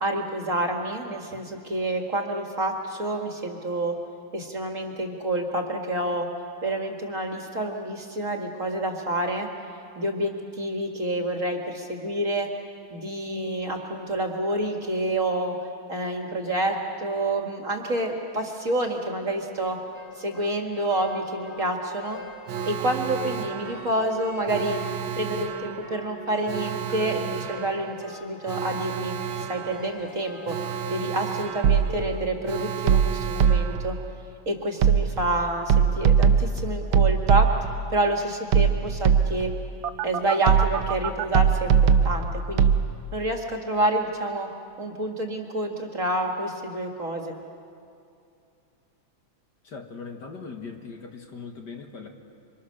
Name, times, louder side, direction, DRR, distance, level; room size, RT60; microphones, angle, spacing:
voice 1, 0.0-3.9 4.3-6.3 6.6-9.5 10.0-12.5 12.9-15.6 15.9-19.8 20.2-22.2 22.7-24.8 25.2-30.6 30.9-34.0 34.5-37.5 37.9-39.5 40.0-42.7 43.1-44.5 44.8-47.3, right 1 dB, 40° right, 2 dB, 2.0 m, -28 dB
Spooky piano tune, 19.9-32.3, left 2 dB, 30° left, 2.0 m, -41 dB
Alarm, 22.5-34.4 39.8-41.4, right 9 dB, 70° right, 1.5 m, -33 dB
sound 1, 31.6-32.2 32.9-33.9 34.8-35.3 35.7-37.8 38.5-39.6 40.5-41.0 41.3-42.8, right 7 dB, 85° right, 1.8 m, -20 dB
voice 2, 49.6-52.1, left 5 dB, 55° left, 3 dB, 2.3 m, -39 dB
27.0 x 25.0 x 6.5 m, 2.5 s
omnidirectional pair, 2.4 m